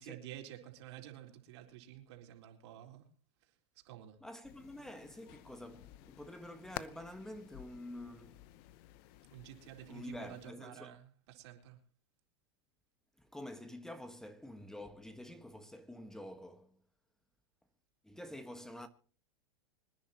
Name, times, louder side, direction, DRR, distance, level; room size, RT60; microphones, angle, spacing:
voice 1, 0.0-3.1 3.8-4.2 9.3-11.8, right 12 dB, 65° right, 4.0 m, -51 dB
voice 2, 4.2-8.5 9.9-11.0 13.2-16.8 18.0-18.9, left 1 dB, 5° left, 1.4 m, -48 dB
sound 1, 4.4-10.5, left 15 dB, 55° left, 0.9 m, -52 dB
25.5 x 10.5 x 2.9 m
supercardioid pair, 130°, 15 cm